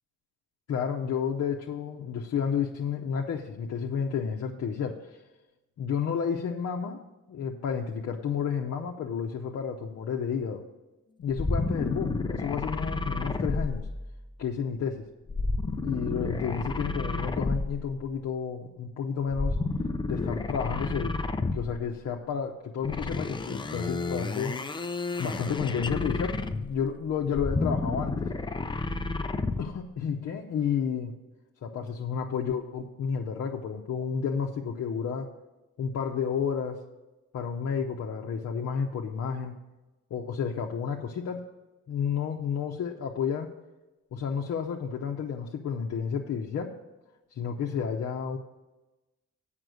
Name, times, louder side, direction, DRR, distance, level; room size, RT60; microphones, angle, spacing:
voice 1, 0.7-5.2 5.8-7.0 7.3-10.6 11.2-13.9 14.4-15.0 15.8-19.6 20.1-21.2 21.5-24.5 25.2-28.3 29.6-31.1 31.6-35.3 35.8-36.8 37.3-39.5 40.1-41.4 41.9-43.5 44.1-46.7 47.3-48.4, left 7 dB, 55° left, 0 dB, 0.8 m, -31 dB
sound 1, 11.3-14.4 15.3-18.0 19.3-21.9 22.8-26.8 27.3-29.8, left 3 dB, 15° left, 0.5 m, -31 dB
7.9 x 5.9 x 7.7 m, 1.1 s
cardioid pair, 90°, 30 cm